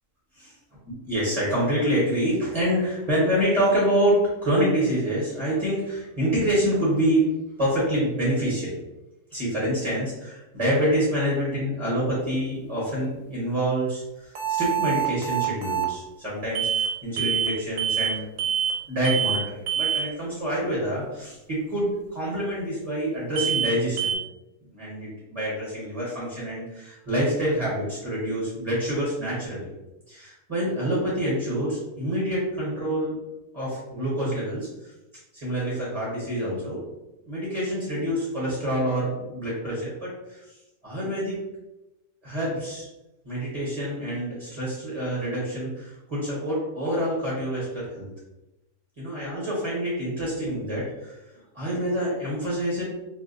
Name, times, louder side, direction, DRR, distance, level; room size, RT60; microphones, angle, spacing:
voice 1, 0.9-8.8 9.3-18.2 18.9-24.2 24.7-29.7 30.1-33.2 33.5-34.9 35.3-36.8 37.3-40.5 40.8-41.4 42.2-42.9 43.2-48.1 49.0-51.2 51.5-52.8, equal, 30° right, -7 dB, 1.0 m, -27 dB
sound 1, 14.4-15.9 16.6-16.9 17.2-17.5 17.8-18.1 18.4-18.8 19.0-19.4 19.7-20.0 23.4-23.7 24.0-24.2, right 9 dB, 85° right, 1.0 m, -25 dB
2.7 x 2.0 x 3.9 m, 0.98 s
omnidirectional pair, 1.4 m